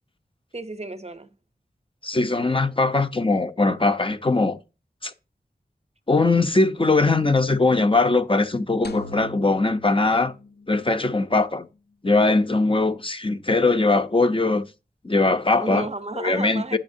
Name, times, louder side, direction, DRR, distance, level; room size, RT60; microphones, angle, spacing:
voice 1, 0.5-1.3 15.6-16.8, right 3 dB, 40° right, 0.7 m, -33 dB
voice 2, 2.0-4.6 5.0-5.1 6.1-10.3 10.7-11.7 12.0-14.6 15.0-15.9 16.2-16.8, left 3 dB, 30° left, 0.7 m, -21 dB
sound 1, 8.8-11.1, left 2 dB, 90° left, 0.7 m, -41 dB
8.8 x 7.1 x 2.7 m
wide cardioid pair, 55°, 16 cm